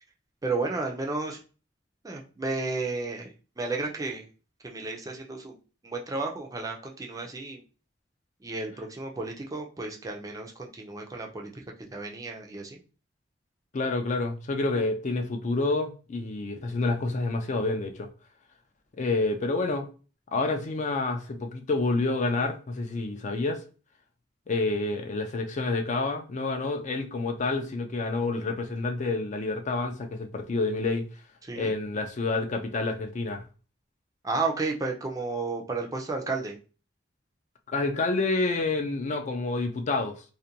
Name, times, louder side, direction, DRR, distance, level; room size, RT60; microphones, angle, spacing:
voice 1, 0.4-1.4 2.0-3.3 3.6-4.3 4.6-5.6 5.8-7.6 8.4-11.5 11.8-12.8 31.5-31.7 34.2-36.6, right 3 dB, 20° right, 0.4 m, -32 dB
voice 2, 13.7-18.1 19.0-19.9 20.3-23.6 24.5-31.1 31.6-33.4 37.7-40.2, left 3 dB, 40° left, 0.4 m, -28 dB
2.5 x 2.1 x 2.7 m
head